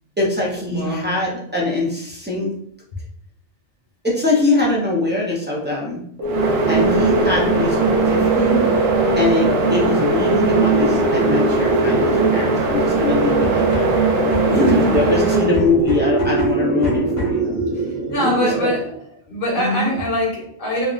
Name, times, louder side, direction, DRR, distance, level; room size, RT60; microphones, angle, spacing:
voice 1, 0.2-2.5 4.0-6.0 6.7-8.7 9.2-13.8 14.6-17.5 18.2-18.7 19.6-19.9, left 3 dB, 15° right, -4 dB, 0.3 m, -22 dB
voice 2, 0.7-1.1 14.4-15.0 17.7-18.9 19.3-20.9, right 1 dB, 50° left, -2 dB, 1.0 m, -23 dB
sound 1, 6.2-15.5, right 3 dB, 60° right, 0.8 m, -20 dB
sound 2, 6.2-19.0, right 2 dB, 80° right, 1.1 m, -22 dB
sound 3, 13.4-17.5, left 4 dB, 30° left, 0.8 m, -30 dB
3.4 x 2.4 x 2.4 m, 0.69 s
omnidirectional pair, 1.3 m